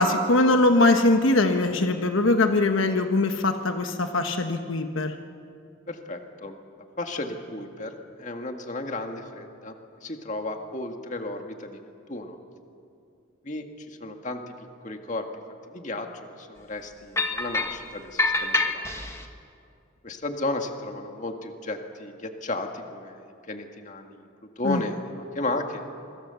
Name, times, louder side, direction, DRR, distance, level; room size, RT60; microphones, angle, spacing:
voice 1, 0.0-5.1 24.6-24.8, left 2 dB, 75° left, 6 dB, 1.2 m, -21 dB
voice 2, 5.9-6.5 7.0-9.7 10.0-11.8 12.1-12.4 13.4-14.5 14.8-15.3 15.7-16.1 16.4-19.1 20.0-24.3 24.6-25.8, left 2 dB, 35° left, 4 dB, 1.9 m, -34 dB
golpeando cosas metalicas, 17.2-17.8 18.2-19.3, left 2 dB, 15° left, 1.4 m, -26 dB
27.5 x 24.5 x 7.0 m, 2.5 s
head